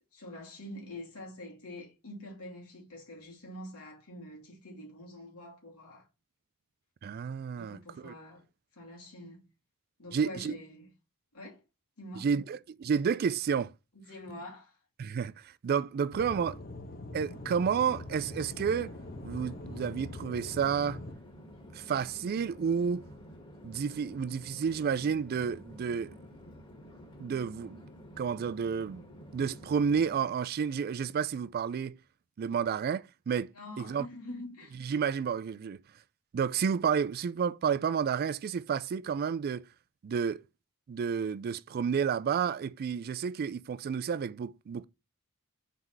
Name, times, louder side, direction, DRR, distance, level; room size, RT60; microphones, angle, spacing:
voice 1, 0.1-6.1 7.6-8.4 8.8-9.4 10.0-10.9 11.3-11.6 12.0-12.3 13.9-14.7 33.5-34.8, left 1 dB, 75° left, 2.6 m, -45 dB
voice 2, 7.0-8.1 10.1-10.5 12.1-13.7 15.0-16.6 17.1-18.9 19.2-21.0 21.7-23.0 23.6-26.1 27.2-27.8 28.2-29.0 29.3-32.0 32.4-33.5 33.8-34.1 34.8-35.8 36.3-39.7 40.0-40.4 40.9-44.8, right 6 dB, 45° right, 0.3 m, -31 dB
Aircraft / Engine, 16.1-21.1, left 2 dB, 45° left, 1.0 m, -43 dB
Chatter / Fixed-wing aircraft airplane, 17.0-30.4, equal, 25° left, 1.8 m, -51 dB
4.6 x 3.9 x 5.4 m
head